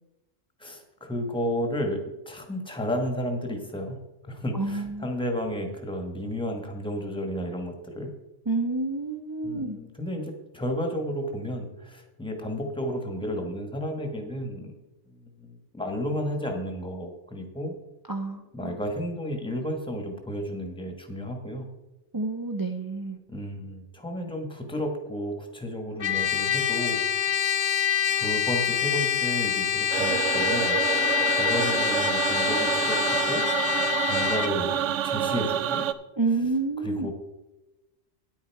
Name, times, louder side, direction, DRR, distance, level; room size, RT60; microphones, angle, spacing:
voice 1, 0.6-2.0 2.2-4.0 4.3-8.1 9.4-14.7 15.1-17.7 18.5-21.7 23.3-27.0 28.2-30.8 31.3-33.4 34.0-35.9 36.8-37.1, equal, 5° left, 4 dB, 1.3 m, -32 dB
voice 2, 4.5-5.1 8.5-9.8 18.1-18.8 22.1-23.2 36.2-37.1, right 3 dB, 35° right, 5 dB, 0.3 m, -29 dB
Trumpet, 26.0-34.5, left 9 dB, 50° left, 0.7 m, -26 dB
sound 1, 29.9-35.9, right 10 dB, 75° right, 0.9 m, -27 dB
9.8 x 8.8 x 4.6 m, 1.0 s
omnidirectional pair, 1.3 m